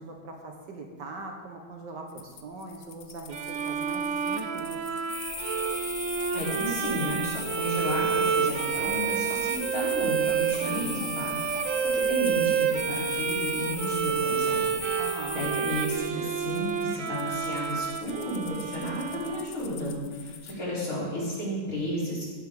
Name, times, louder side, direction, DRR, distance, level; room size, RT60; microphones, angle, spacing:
voice 1, 0.0-4.8 15.0-15.4, right 3 dB, 60° right, 2 dB, 1.8 m, -41 dB
sound 1, 2.1-20.6, left 8 dB, 60° left, 1.0 m, -47 dB
Bowed string instrument, 3.3-19.9, right 7 dB, 80° right, 0.7 m, -29 dB
sound 2, 5.1-16.0, left 3 dB, 80° left, 3.5 m, -37 dB
voice 2, 6.3-14.6 14.9-22.2, equal, 45° left, -7 dB, 4.2 m, -33 dB
15.0 x 11.0 x 3.7 m, 1.5 s
omnidirectional pair, 2.2 m